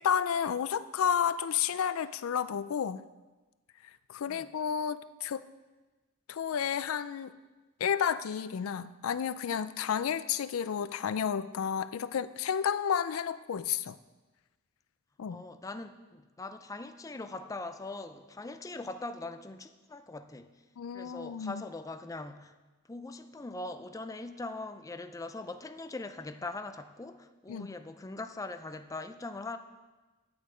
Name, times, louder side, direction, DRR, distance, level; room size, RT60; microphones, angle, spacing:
voice 1, 0.0-3.0 4.1-5.5 6.3-7.3 7.8-14.0 15.2-15.4 20.8-21.6 27.5-27.7, left 8 dB, 85° left, 14 dB, 0.4 m, -31 dB
voice 2, 15.3-20.5 20.9-22.5 22.9-29.6, left 2 dB, 15° left, 8 dB, 0.4 m, -41 dB
9.1 x 8.6 x 5.0 m, 1.2 s
head